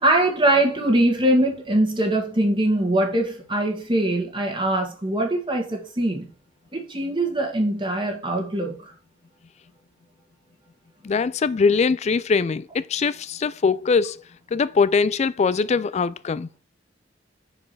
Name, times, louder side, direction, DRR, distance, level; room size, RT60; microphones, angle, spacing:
voice 1, 0.0-6.3 6.7-8.9, right 1 dB, 25° right, 1.7 m, -22 dB
voice 2, 11.0-14.2 14.5-16.5, left 5 dB, 35° left, 0.3 m, -22 dB
5.9 x 4.8 x 4.7 m
head